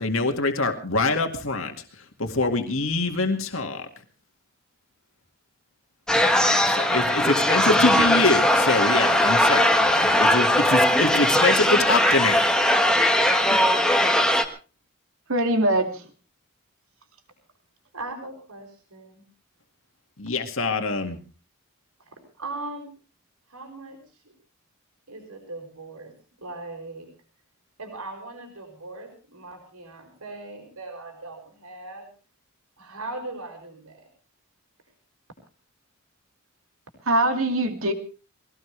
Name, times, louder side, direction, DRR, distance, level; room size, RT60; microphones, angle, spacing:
voice 1, 0.0-1.8 2.2-3.9 6.4-12.5 20.2-21.2, left 3 dB, 65° left, 5 dB, 2.1 m, -24 dB
sound 1, 6.1-14.4, left 1 dB, 5° left, 1.4 m, -19 dB
voice 2, 15.3-16.0 37.1-37.9, right 1 dB, 70° right, 7 dB, 2.5 m, -22 dB
voice 3, 17.9-19.2 22.4-22.9 23.5-24.0 25.1-26.1 26.4-27.1 27.8-32.1 32.8-34.1, right 2 dB, 90° right, 3 dB, 5.8 m, -39 dB
22.5 x 17.5 x 3.4 m, 0.34 s
head